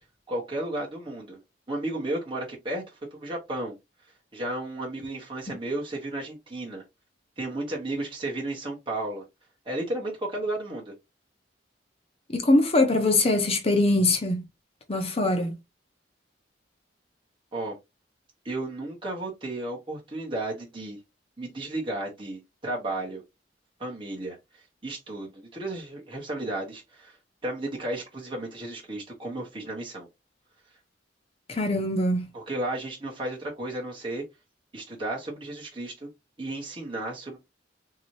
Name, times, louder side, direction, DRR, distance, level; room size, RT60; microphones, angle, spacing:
voice 1, 0.3-1.4 1.7-3.7 4.3-6.8 7.4-9.2 9.7-10.9 17.5-17.7 18.4-21.0 21.4-23.2 23.8-27.2 27.4-30.1 32.3-34.2 34.7-36.1 36.4-37.4, right 1 dB, 25° right, 1.1 m, -33 dB
voice 2, 12.3-14.4 14.9-15.5 31.5-32.2, left 2 dB, 30° left, 0.7 m, -22 dB
3.8 x 2.8 x 3.1 m
head